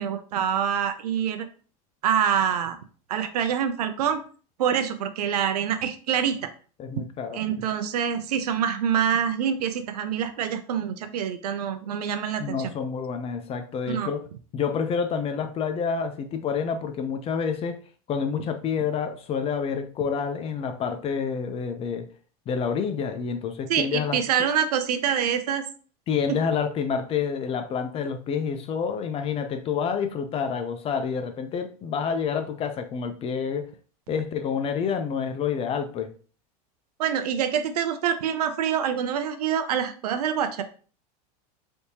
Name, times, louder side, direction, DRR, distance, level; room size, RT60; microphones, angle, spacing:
voice 1, 0.0-1.5 2.0-2.8 3.1-4.2 4.6-6.5 7.3-12.7 13.9-14.1 23.7-25.6 37.0-40.6, right 8 dB, 90° right, 0.5 m, -26 dB
voice 2, 6.8-7.4 12.4-14.3 14.5-17.8 18.1-22.1 22.5-24.2 26.1-33.7 34.1-36.1, left 6 dB, 30° left, 0.5 m, -28 dB
3.4 x 2.8 x 2.7 m
supercardioid pair, 115°, 19 cm